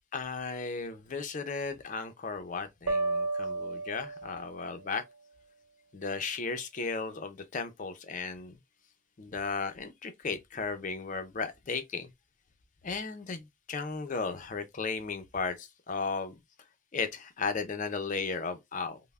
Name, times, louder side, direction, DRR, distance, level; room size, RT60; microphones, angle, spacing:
voice 1, 0.1-5.0 5.9-8.6 9.2-12.1 12.8-16.4 16.9-19.0, left 4 dB, 35° left, 0.4 m, -35 dB
sound 1, 2.9-4.8, right 3 dB, 80° right, 1.0 m, -32 dB
5.3 x 2.1 x 2.3 m
head